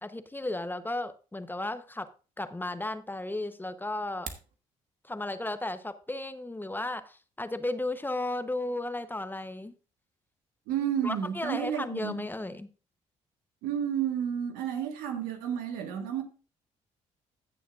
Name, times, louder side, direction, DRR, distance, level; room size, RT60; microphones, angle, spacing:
voice 1, 0.0-2.1 2.4-4.3 5.0-9.7 11.0-12.7, left 2 dB, 15° left, 0.9 m, -34 dB
sound 1, 4.0-4.6, right 6 dB, 65° right, 1.4 m, -42 dB
voice 2, 10.7-12.2 13.6-16.2, right 9 dB, 90° right, 1.4 m, -31 dB
15.0 x 7.0 x 2.4 m
supercardioid pair, 60°, 15 cm